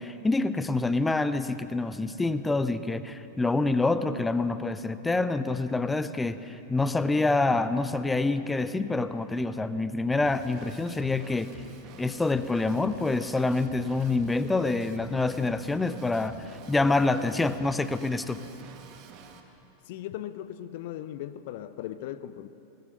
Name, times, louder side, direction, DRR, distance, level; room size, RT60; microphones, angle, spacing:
voice 1, 0.0-11.5 12.0-16.4 16.7-18.4, left 3 dB, 10° left, 13 dB, 0.7 m, -26 dB
Drum kit / Drum, 10.2-19.4, right 5 dB, 40° right, 1.8 m, -49 dB
voice 2, 19.9-22.5, left 12 dB, 50° left, 14 dB, 0.6 m, -38 dB
22.0 x 19.5 x 6.8 m, 2.8 s
figure-of-eight pair, 90°, 0 cm